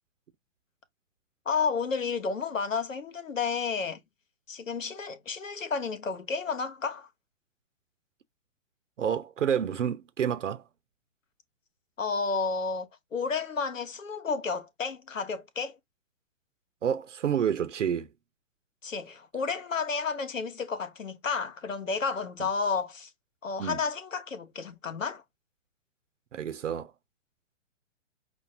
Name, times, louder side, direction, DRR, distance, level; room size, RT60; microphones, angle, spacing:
voice 1, 1.5-4.0 4.5-7.1 12.0-15.8 18.8-23.1 23.4-25.2, left 5 dB, 85° left, 1.2 m, -31 dB
voice 2, 9.0-10.6 16.8-18.1 23.6-23.8 26.3-26.9, right 8 dB, 70° right, 0.9 m, -29 dB
6.1 x 2.6 x 2.7 m
hypercardioid pair, 125°, 38 cm